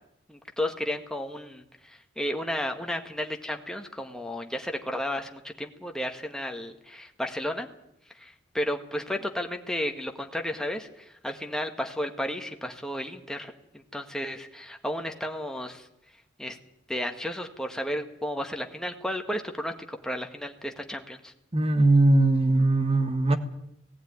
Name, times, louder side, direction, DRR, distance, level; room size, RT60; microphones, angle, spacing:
voice 1, 0.3-7.7 8.1-15.9 16.4-16.6 16.9-21.3, equal, 5° left, 1.7 m, -33 dB
voice 2, 21.5-23.4, right 2 dB, 35° right, 1.6 m, -20 dB
18.5 x 15.0 x 9.6 m
head